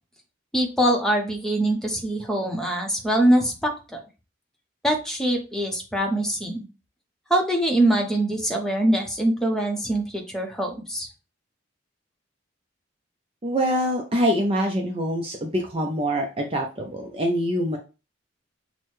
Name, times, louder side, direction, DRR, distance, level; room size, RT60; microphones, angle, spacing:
voice 1, 0.5-4.0 4.8-6.6 7.3-11.1, right 1 dB, 5° left, 1 dB, 0.8 m, -23 dB
voice 2, 13.4-17.8, equal, 30° right, 1 dB, 0.5 m, -25 dB
6.1 x 2.1 x 3.1 m, 0.31 s
head